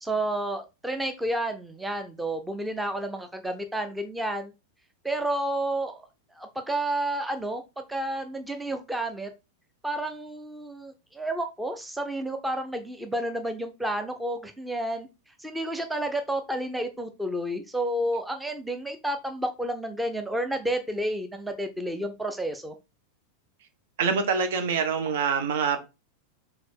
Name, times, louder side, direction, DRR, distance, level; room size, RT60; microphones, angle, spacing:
voice 1, 0.0-4.5 5.0-6.1 6.4-7.6 7.9-9.3 9.8-15.1 15.4-22.7, right 1 dB, 5° right, 7 dB, 0.9 m, -30 dB
voice 2, 24.0-25.8, right 6 dB, 55° right, 7 dB, 1.5 m, -25 dB
6.3 x 4.3 x 4.6 m, 0.27 s
figure-of-eight pair, 90°, 0 cm